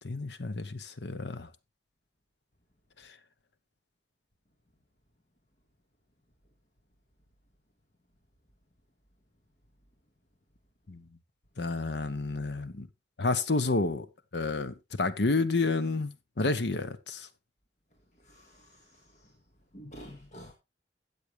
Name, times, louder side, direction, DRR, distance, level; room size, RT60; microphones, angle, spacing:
voice 1, 0.0-1.5 10.9-11.0 11.6-12.9 13.2-14.1 14.3-17.3, left 3 dB, 75° left, 0.9 m, -30 dB
voice 2, 18.2-19.3 19.7-20.5, equal, 45° left, 1.8 m, -49 dB
13.5 x 8.3 x 3.3 m
head